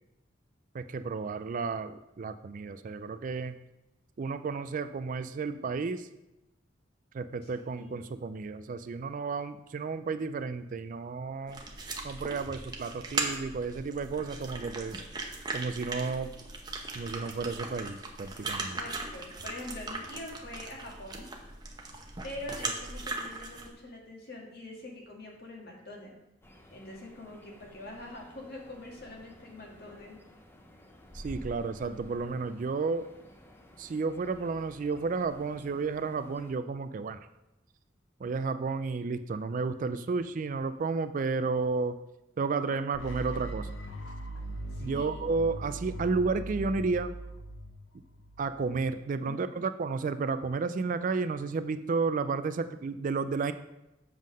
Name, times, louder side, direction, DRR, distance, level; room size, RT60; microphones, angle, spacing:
voice 1, 0.7-3.6 4.2-6.1 7.1-11.6 12.0-15.0 15.5-16.3 16.9-18.8 31.1-33.1 33.8-37.2 38.2-42.0 42.4-43.7 44.8-47.1 48.4-53.5, right 4 dB, 45° right, 11 dB, 0.3 m, -32 dB
sound 1, 11.5-23.7, right 3 dB, 20° right, 0.8 m, -38 dB
voice 2, 18.5-21.3 22.2-26.2 26.7-30.2 44.7-45.3 49.3-49.4, left 2 dB, 55° left, -1 dB, 1.7 m, -44 dB
sound 2, 26.4-36.5, left 1 dB, 10° left, 0.6 m, -52 dB
sound 3, 42.9-48.9, right 1 dB, 85° left, 0.9 m, -40 dB
7.5 x 3.7 x 6.2 m, 0.91 s
head